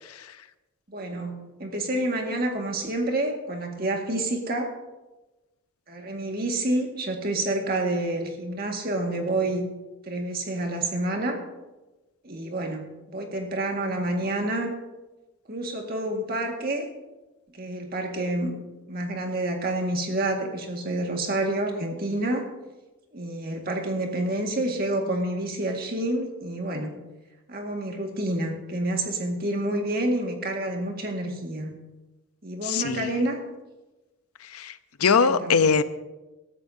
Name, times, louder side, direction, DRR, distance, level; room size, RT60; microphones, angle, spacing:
voice 1, 0.9-4.7 5.9-9.6 10.0-11.4 12.2-14.7 15.5-16.9 17.5-18.6 18.9-22.5 23.1-27.0 27.5-31.8 32.4-33.4 35.2-35.7, right 1 dB, 45° right, 2 dB, 1.8 m, -28 dB
voice 2, 32.6-33.1 34.5-35.8, left 5 dB, 90° left, 12 dB, 0.7 m, -22 dB
21.0 x 13.0 x 2.7 m, 1.1 s
head